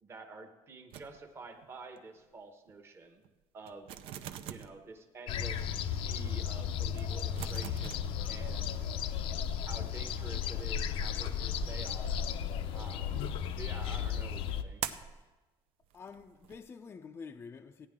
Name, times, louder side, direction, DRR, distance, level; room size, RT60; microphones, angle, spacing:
voice 1, 0.0-3.2 3.5-3.9 4.5-8.9 9.7-12.2 12.7-13.3 13.6-14.9, right 3 dB, 25° right, 1.0 m, -49 dB
sound 1, 0.9-1.7 2.0-2.2 2.7-2.8 3.2-3.3 3.7-4.9 5.4-5.5 6.1-6.2 6.4-6.5 6.9-8.8 9.1-12.8 14.8-15.2 15.8-16.6, right 10 dB, 75° right, 0.6 m, -45 dB
sound 2, 5.3-14.6, left 8 dB, 70° left, 0.6 m, -34 dB
voice 2, 15.9-17.9, left 5 dB, 25° left, 0.4 m, -47 dB
16.0 x 9.7 x 3.6 m
cardioid pair, 160°, 10 cm